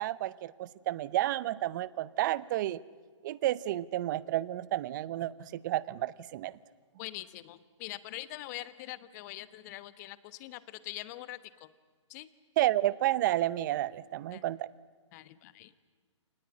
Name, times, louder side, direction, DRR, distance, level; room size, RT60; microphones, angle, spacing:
voice 1, 0.0-2.8 3.2-6.6 12.6-14.7, right 14 dB, 40° right, 20 dB, 0.7 m, -31 dB
voice 2, 7.0-11.7 12.1-12.3 14.3-14.4 15.1-15.7, left 16 dB, 35° left, 15 dB, 1.2 m, -43 dB
25.5 x 20.0 x 9.9 m, 1.4 s
hypercardioid pair, 145°, 16 cm